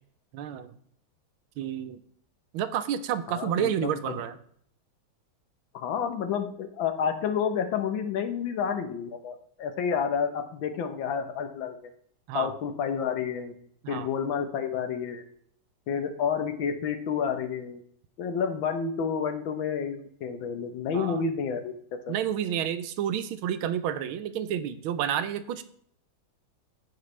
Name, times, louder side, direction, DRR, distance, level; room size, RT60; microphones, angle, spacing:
voice 1, 0.3-0.8 1.6-2.0 2.5-4.4 12.3-12.5 13.8-14.1 20.9-21.2 22.1-25.6, right 9 dB, 85° right, 11 dB, 1.5 m, -30 dB
voice 2, 3.3-4.2 5.7-11.8 12.3-13.5 13.9-15.2 15.9-17.8 18.2-21.7 22.1-22.2, left 7 dB, 75° left, 7 dB, 1.6 m, -30 dB
14.5 x 4.9 x 3.2 m, 0.64 s
omnidirectional pair, 2.2 m